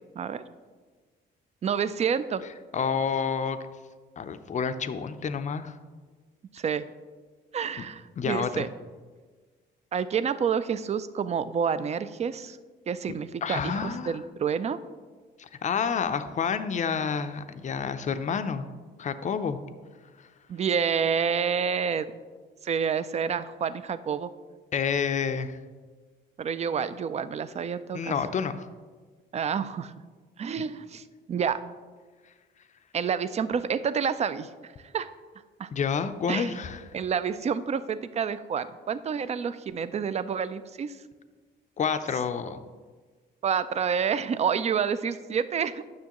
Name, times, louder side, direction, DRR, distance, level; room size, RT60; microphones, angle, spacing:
voice 1, 1.6-2.4 6.5-6.8 7.5-8.7 9.9-12.6 12.9-14.8 20.5-22.2 22.6-24.3 26.4-28.1 29.3-29.9 30.4-31.6 32.9-35.1 35.6-35.7 36.3-36.5 36.9-41.0 43.4-45.8, right 7 dB, 35° right, 14 dB, 0.4 m, -28 dB
voice 2, 2.7-3.6 4.2-5.8 8.2-8.7 13.4-14.2 15.4-18.7 19.0-19.6 20.2-20.3 24.7-25.6 27.9-28.7 30.6-30.7 35.7-36.8 41.8-42.6, left 6 dB, 40° left, 11 dB, 0.5 m, -29 dB
9.4 x 6.3 x 3.0 m, 1.4 s
cardioid pair, 90°, 20 cm